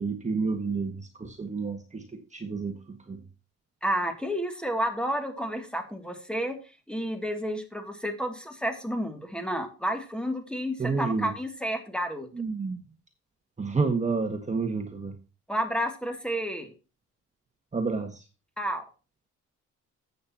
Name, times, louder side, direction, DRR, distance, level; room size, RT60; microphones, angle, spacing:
voice 1, 0.0-3.2 10.8-11.3 12.3-12.8 13.6-15.2 17.7-18.2, right 4 dB, 25° right, 5 dB, 1.7 m, -30 dB
voice 2, 3.8-6.6 6.9-12.3 15.5-16.7 18.6-18.8, equal, 5° left, 5 dB, 2.6 m, -31 dB
13.5 x 8.7 x 2.9 m, 0.32 s
cardioid pair, 90°, 30 cm